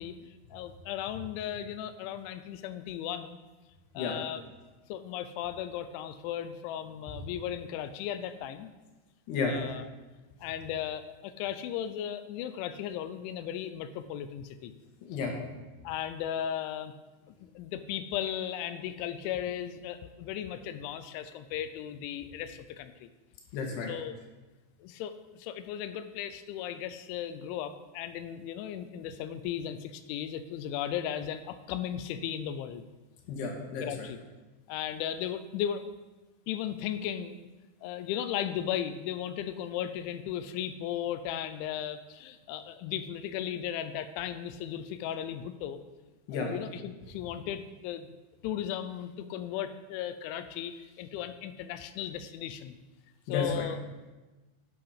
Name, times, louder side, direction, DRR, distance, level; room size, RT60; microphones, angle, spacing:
voice 1, 0.0-3.4 3.9-4.4 4.9-8.7 9.5-9.9 10.4-14.7 15.8-16.9 17.4-23.1 23.9-24.1 24.8-32.8 33.8-34.2 34.7-35.8 36.5-37.4 37.8-45.8 46.5-48.1 48.4-52.7 53.3-53.8, left 10 dB, 85° left, 11 dB, 2.9 m, -36 dB
voice 2, 15.0-15.3 23.5-23.9 33.3-34.1 46.3-46.5 53.3-53.7, left 4 dB, 65° left, 1 dB, 3.1 m, -32 dB
10.5 x 6.9 x 5.6 m, 1.2 s
omnidirectional pair, 5.5 m